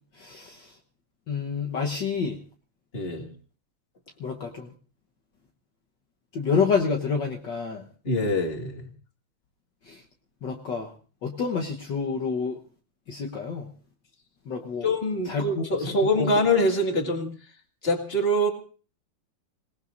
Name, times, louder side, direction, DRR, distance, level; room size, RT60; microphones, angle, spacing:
voice 1, 0.2-0.6 1.3-2.4 4.2-4.7 6.3-7.8 9.9-10.0 10.4-10.9 11.2-12.6 13.1-13.7 14.5-14.9 15.3-15.6 16.2-16.3, left 5 dB, 60° left, 1 dB, 1.8 m, -28 dB
voice 2, 2.9-3.3 8.0-8.9 14.8-17.3 17.8-18.5, left 1 dB, 25° left, 3 dB, 2.4 m, -24 dB
27.0 x 18.5 x 2.6 m, 0.38 s
omnidirectional pair, 2.4 m